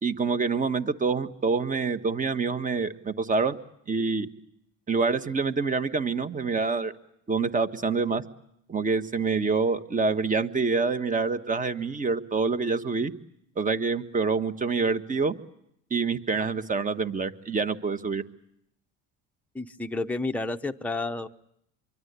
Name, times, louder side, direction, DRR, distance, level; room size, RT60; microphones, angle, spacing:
voice 1, 0.0-3.6 3.9-4.3 4.9-6.9 7.3-8.2 8.7-13.1 13.6-15.3 15.9-18.2, right 4 dB, 20° right, 10 dB, 1.4 m, -26 dB
voice 2, 19.5-21.3, left 2 dB, 5° left, 5 dB, 0.9 m, -30 dB
25.5 x 23.5 x 8.2 m, 0.75 s
cardioid pair, 120°, 38 cm